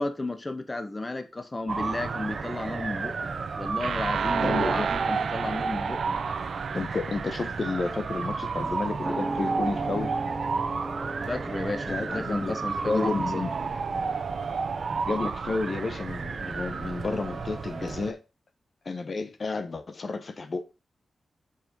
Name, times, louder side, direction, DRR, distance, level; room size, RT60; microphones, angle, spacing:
voice 1, 0.0-6.2 11.3-13.2, left 2 dB, 20° left, 0.9 m, -33 dB
sound 1, 1.7-18.1, right 4 dB, 50° right, 1.0 m, -32 dB
sound 2, 3.8-8.7, right 6 dB, 70° right, 0.6 m, -32 dB
voice 2, 4.4-4.8 6.7-10.2 11.9-12.5 12.8-13.5 15.0-18.2 18.8-20.6, left 3 dB, 40° left, 0.9 m, -31 dB
sound 3, 9.0-16.1 16.4-16.5, right 1 dB, 10° right, 0.6 m, -38 dB
7.6 x 5.8 x 5.3 m
wide cardioid pair, 135°, 0 cm